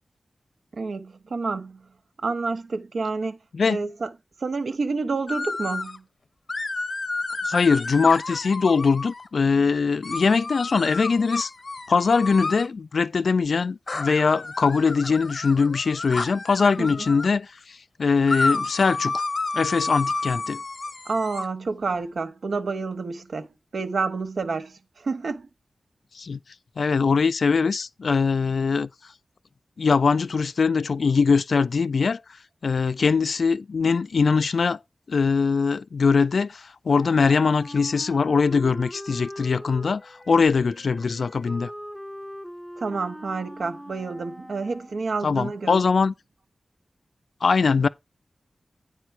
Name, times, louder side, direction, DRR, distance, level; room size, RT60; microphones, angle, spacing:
voice 1, 0.7-1.8 2.2-3.4 3.7-4.1 4.4-6.0 16.8-16.9 21.1-23.5 23.7-25.5 42.8-45.8, right 4 dB, 75° right, 0.8 m, -29 dB
sound 1, 5.3-6.0 6.5-9.3 10.0-12.7 13.9-17.3 18.3-21.4, left 3 dB, 55° left, 0.8 m, -31 dB
voice 2, 7.4-11.5 11.9-19.2 19.5-20.6 26.1-26.4 26.8-28.9 29.8-32.2 32.6-34.8 35.1-41.7 45.2-46.1 47.4-47.9, left 5 dB, 75° left, 0.3 m, -22 dB
Wind instrument woodwind instrument, 36.9-45.0, equal, ahead, 0.6 m, -41 dB
9.1 x 4.4 x 4.6 m
wide cardioid pair, 75°, 0 cm